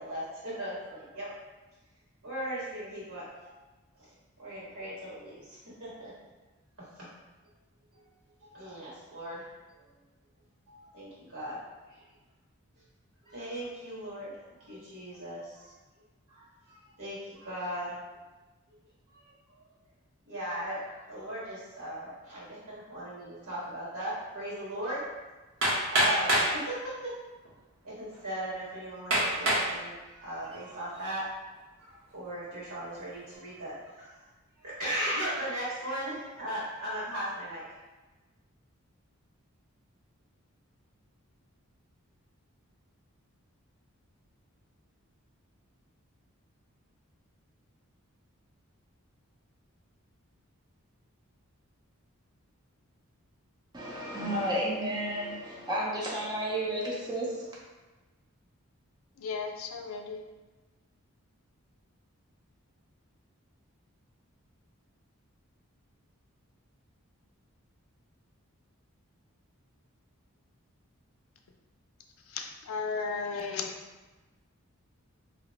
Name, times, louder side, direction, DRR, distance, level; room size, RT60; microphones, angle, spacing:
voice 1, 0.0-1.3 2.2-3.5 4.4-6.2 6.8-7.1 8.4-9.5 10.7-11.6 11.9-12.0 13.2-14.3 14.6-15.7 16.3-17.9 19.1-19.2 20.3-25.1 25.9-27.1 27.8-31.3 31.8-34.1 34.6-37.6, right 1 dB, 75° right, -8 dB, 1.5 m, -38 dB
Hammer, 25.6-26.5 27.5-27.6 28.1-28.2 29.1-29.7 30.3-30.7, right 1 dB, 60° right, 0.8 m, -25 dB
voice 2, 53.7-57.6, right 1 dB, 20° right, -5 dB, 0.5 m, -32 dB
voice 3, 59.2-60.2 72.3-73.7, left 5 dB, 70° left, 4 dB, 0.4 m, -35 dB
2.8 x 2.1 x 4.0 m, 1.2 s
head